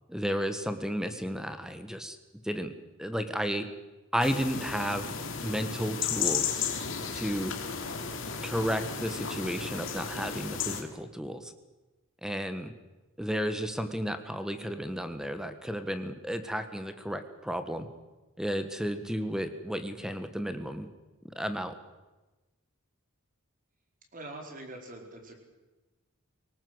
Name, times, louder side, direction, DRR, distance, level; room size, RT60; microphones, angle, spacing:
voice 1, 0.1-2.2 2.4-2.7 3.0-3.7 4.1-5.1 5.4-6.5 7.1-7.5 8.4-11.5 12.2-12.7 13.2-17.9 18.4-20.9 21.3-21.7, equal, 5° right, 9 dB, 1.5 m, -32 dB
sound 1, 4.2-10.8, left 6 dB, 60° left, 3.0 m, -34 dB
voice 2, 24.1-25.4, right 2 dB, 40° right, 2 dB, 4.9 m, -43 dB
24.5 x 18.5 x 8.1 m, 1.1 s
head